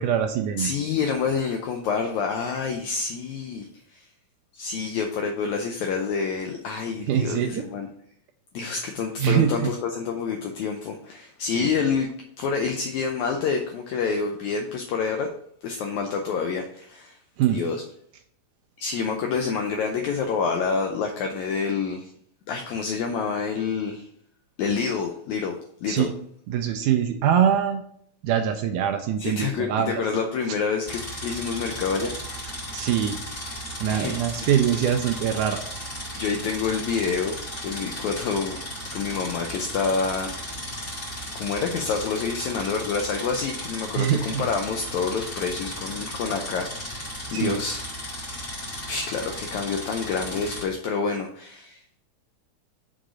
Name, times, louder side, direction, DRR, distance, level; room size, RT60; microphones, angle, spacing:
voice 1, 0.0-0.7 7.1-7.6 9.2-9.7 11.5-11.7 17.4-17.6 25.9-26.1 26.5-27.8 28.2-30.0 32.7-33.2 33.8-35.6 43.9-44.5 47.3-47.6, right 9 dB, 85° right, 5 dB, 1.8 m, -23 dB
voice 2, 0.6-4.1 4.5-7.9 8.5-12.1 12.4-15.3 15.6-17.2 17.5-17.8 18.8-22.1 22.5-24.1 24.6-26.1 29.2-32.1 33.9-34.5 36.2-38.6 38.9-40.6 41.3-47.9 48.9-52.0, left 5 dB, 85° left, 3 dB, 1.6 m, -28 dB
sound 1, 30.8-50.6, equal, 25° left, 1.9 m, -35 dB
6.5 x 3.8 x 6.1 m, 0.67 s
omnidirectional pair, 4.1 m